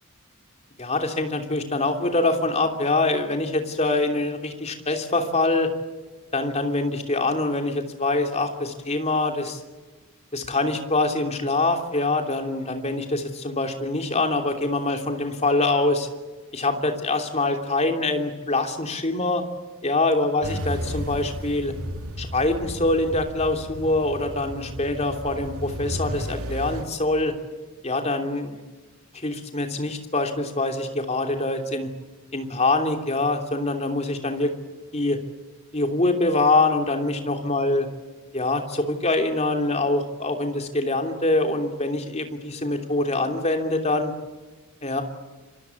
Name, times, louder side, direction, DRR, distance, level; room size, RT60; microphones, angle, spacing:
voice 1, 0.8-5.7 6.3-9.6 10.3-16.1 16.5-19.4 19.8-21.7 22.2-27.3 27.8-28.6 29.1-31.9 32.3-34.5 34.9-35.2 35.7-37.9 38.3-44.1 44.8-45.0, left 2 dB, 30° left, 5 dB, 3.1 m, -24 dB
sound 1, 20.4-26.8, equal, 80° right, 3.2 m, -33 dB
26.5 x 24.5 x 8.4 m, 1.2 s
head